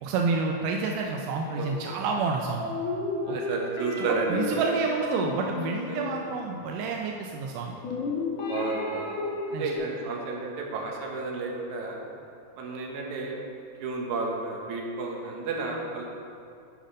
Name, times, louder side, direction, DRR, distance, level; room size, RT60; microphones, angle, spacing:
voice 1, 0.0-2.7 3.3-3.4 4.0-7.8 9.5-9.7, right 4 dB, 85° right, 1 dB, 2.2 m, -29 dB
voice 2, 1.5-1.9 3.2-4.6 5.9-6.2 8.4-9.2 9.5-12.0 12.6-13.4 13.8-16.1, right 3 dB, 70° right, -1 dB, 2.4 m, -32 dB
sound 1, 2.6-6.8 7.8-9.8, left 3 dB, 70° left, 2.4 m, -33 dB
9.8 x 5.1 x 5.1 m, 2.5 s
omnidirectional pair, 3.7 m